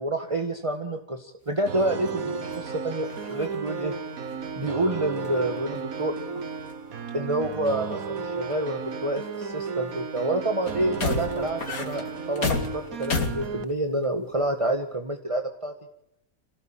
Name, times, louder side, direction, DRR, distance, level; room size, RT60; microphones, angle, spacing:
voice 1, 0.0-3.9 4.6-6.2 7.1-15.7, right 1 dB, 20° right, 5 dB, 1.8 m, -28 dB
sound 1, 1.7-4.9 5.2-6.1 6.3-6.9 7.4-8.1 8.5-8.6 9.2-9.9 10.6-14.0 14.3-14.5, left 4 dB, 85° left, 2.8 m, -34 dB
sound 2, 1.7-13.6, right 5 dB, 80° right, 1.8 m, -34 dB
27.0 x 17.5 x 9.1 m, 0.81 s
omnidirectional pair, 1.5 m